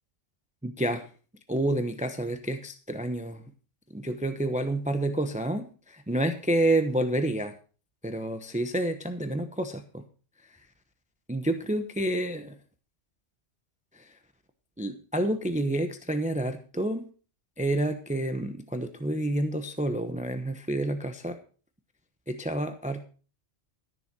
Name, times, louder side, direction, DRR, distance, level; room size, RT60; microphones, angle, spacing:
voice 1, 0.6-1.1 1.5-3.4 3.9-7.6 8.0-10.0 10.4-10.6 11.3-12.6 13.9-14.2 14.8-17.1 17.6-21.4 22.3-23.1, right 1 dB, 5° right, 8 dB, 0.8 m, -29 dB
13.5 x 7.0 x 6.0 m, 0.38 s
omnidirectional pair, 1.2 m